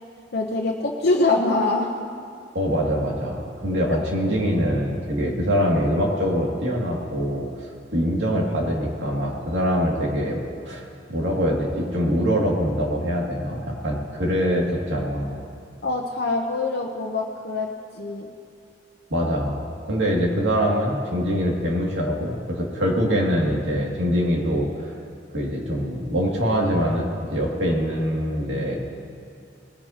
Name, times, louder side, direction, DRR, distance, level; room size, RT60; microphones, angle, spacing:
voice 1, 0.3-1.9 3.9-4.0 15.8-18.3, left 2 dB, 60° left, -1 dB, 0.9 m, -24 dB
voice 2, 2.5-7.4 7.9-10.4 10.7-15.4 19.1-24.7 25.3-28.9, equal, 90° right, -2 dB, 2.5 m, -24 dB
20.0 x 15.0 x 2.9 m, 2.4 s
head